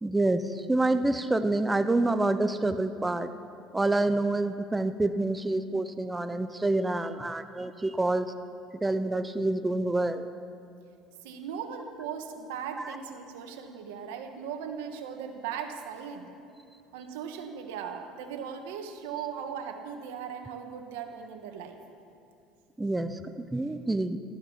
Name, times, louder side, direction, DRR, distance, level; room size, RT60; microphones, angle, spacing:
voice 1, 0.0-3.3 3.7-8.3 8.8-10.3 12.8-13.0 22.8-24.2, right 2 dB, 10° right, 10 dB, 0.6 m, -27 dB
voice 2, 11.2-16.3 16.9-21.8, right 7 dB, 90° right, 5 dB, 1.4 m, -38 dB
14.0 x 13.5 x 5.7 m, 2.8 s
supercardioid pair, 110°, 0 cm